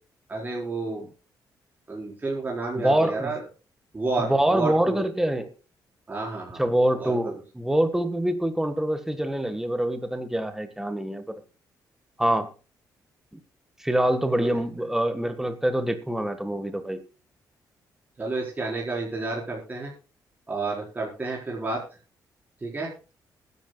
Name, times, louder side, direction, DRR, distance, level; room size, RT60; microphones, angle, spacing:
voice 1, 0.3-1.1 1.9-3.4 3.9-5.0 6.1-6.6 6.9-7.3 14.4-14.5 18.2-19.9 20.5-21.8 22.6-22.9, right 3 dB, 25° right, -3 dB, 4.6 m, -30 dB
voice 2, 2.7-3.3 4.2-5.5 6.6-11.4 12.2-12.5 13.8-17.0, right 1 dB, 5° right, 9 dB, 1.5 m, -25 dB
21.0 x 11.0 x 2.3 m, 0.33 s
cardioid pair, 100°, 7 cm